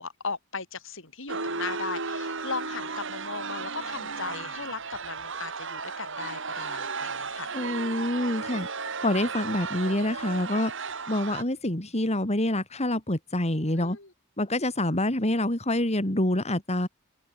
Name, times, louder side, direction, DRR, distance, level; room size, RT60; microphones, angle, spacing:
voice 1, 0.0-7.5 13.8-14.1, left 4 dB, 65° left, 5.5 m, -37 dB
sound 1, 1.3-11.4, right 4 dB, 65° right, 6.3 m, -34 dB
voice 2, 7.5-8.7 9.0-10.7 11.1-14.0 14.4-16.9, left 1 dB, 30° left, 3.7 m, -26 dB
open air
head